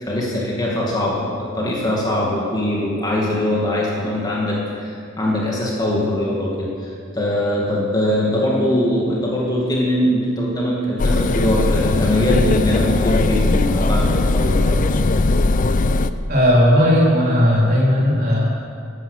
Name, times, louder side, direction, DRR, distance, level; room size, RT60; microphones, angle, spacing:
voice 1, 0.0-14.9, left 1 dB, 20° left, -4 dB, 2.2 m, -22 dB
sound 1, 11.0-16.1, left 2 dB, 40° left, 0.5 m, -18 dB
voice 2, 16.3-18.5, equal, 45° right, -4 dB, 3.9 m, -15 dB
15.0 x 11.5 x 6.6 m, 2.3 s
head